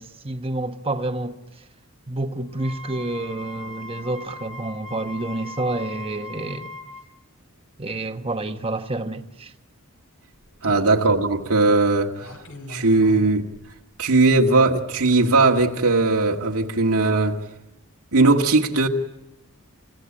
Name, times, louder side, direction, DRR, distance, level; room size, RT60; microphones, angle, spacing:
voice 1, 0.0-1.6 2.1-6.7 7.8-9.5 10.7-10.9, right 2 dB, 25° right, 1.1 m, -29 dB
Wind instrument woodwind instrument, 2.5-7.0, left 2 dB, 20° left, 2.4 m, -39 dB
sound 1, 10.3-10.8 12.2-13.9 15.1-15.2 16.0-16.2, left 1 dB, 65° left, 4.8 m, -41 dB
voice 2, 10.6-12.3 12.7-13.5 14.0-17.4 18.1-18.9, right 3 dB, 85° right, 1.8 m, -18 dB
29.5 x 16.5 x 8.6 m
head